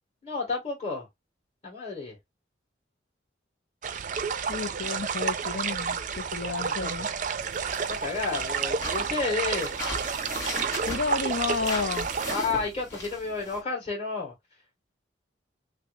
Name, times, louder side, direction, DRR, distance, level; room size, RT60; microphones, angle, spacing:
voice 1, 0.2-1.1 1.6-2.2 6.6-7.1 7.8-9.7 12.3-14.3, left 4 dB, 35° left, 2.1 m, -31 dB
sound 1, 3.8-12.4, right 6 dB, 45° right, 0.4 m, -30 dB
voice 2, 4.5-7.1 10.9-12.1, left 4 dB, 65° left, 0.5 m, -31 dB
sound 2, 7.4-13.6, left 1 dB, 15° left, 2.2 m, -38 dB
5.8 x 2.0 x 2.6 m
head